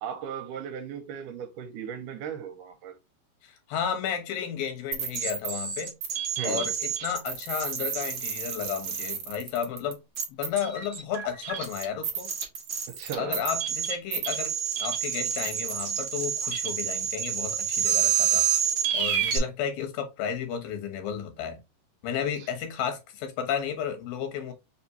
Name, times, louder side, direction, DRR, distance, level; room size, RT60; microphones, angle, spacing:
voice 1, 0.0-3.0 6.4-6.7 12.9-13.4 22.4-22.5, right 8 dB, 80° right, 2.2 m, -36 dB
voice 2, 3.4-5.9 6.4-10.0 10.3-12.3 13.2-14.5 14.8-18.5 18.9-21.6 22.0-24.5, left 8 dB, 90° left, 2.9 m, -32 dB
sound 1, 4.9-19.4, right 8 dB, 60° right, 1.6 m, -29 dB
5.9 x 3.1 x 2.7 m
omnidirectional pair, 4.0 m